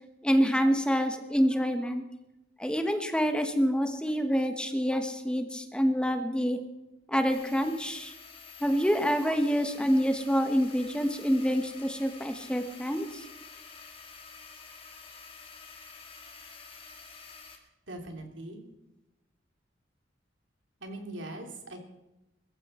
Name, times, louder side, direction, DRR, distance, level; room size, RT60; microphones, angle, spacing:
voice 1, 0.2-2.0 2.6-6.6 7.1-8.1 8.6-13.2, equal, 5° left, 6 dB, 1.2 m, -27 dB
sound 1, 7.3-17.6, left 5 dB, 30° left, 2.6 m, -49 dB
voice 2, 17.9-18.6 20.8-21.8, right 1 dB, 85° right, 3 dB, 3.2 m, -41 dB
21.5 x 14.5 x 4.4 m, 0.95 s
head